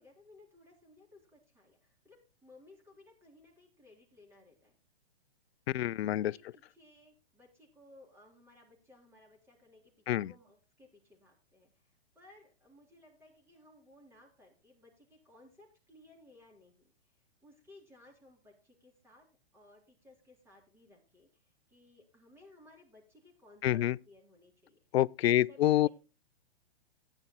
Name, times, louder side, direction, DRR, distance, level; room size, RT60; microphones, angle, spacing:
voice 1, 0.0-4.8 6.3-19.3 19.5-24.8 25.2-25.9, left 1 dB, 10° right, 3.8 m, -60 dB
voice 2, 5.7-6.4 10.1-10.3 23.6-23.9 24.9-25.9, left 13 dB, 70° left, 0.4 m, -27 dB
17.0 x 9.9 x 2.2 m
hypercardioid pair, 130°, 33 cm